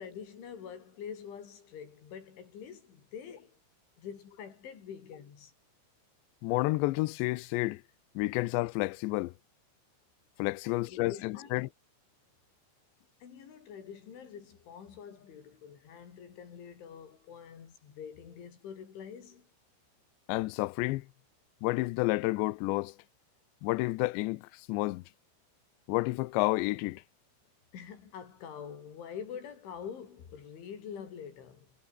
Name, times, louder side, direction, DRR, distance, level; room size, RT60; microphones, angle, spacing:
voice 1, 0.0-3.6 4.0-5.5 10.6-11.5 13.2-19.5 27.7-31.7, left 7 dB, 65° left, 6.6 m, -46 dB
voice 2, 6.4-7.8 8.2-9.3 10.4-11.7 20.3-21.1 21.6-23.0 23.6-25.0 25.9-27.0, left 21 dB, 85° left, 2.5 m, -30 dB
omnidirectional pair, 5.9 m